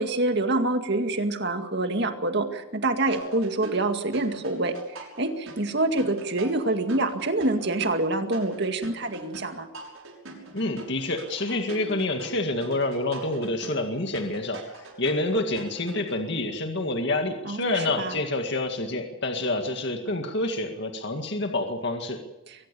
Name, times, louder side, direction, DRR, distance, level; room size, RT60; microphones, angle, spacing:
voice 1, 0.0-9.7 17.5-18.2, right 2 dB, 50° right, 6 dB, 2.1 m, -26 dB
sound 1, 3.1-16.2, right 2 dB, 75° right, 6.2 m, -43 dB
voice 2, 10.5-22.2, left 2 dB, 55° left, 4 dB, 2.1 m, -28 dB
23.0 x 18.5 x 7.0 m, 0.97 s
head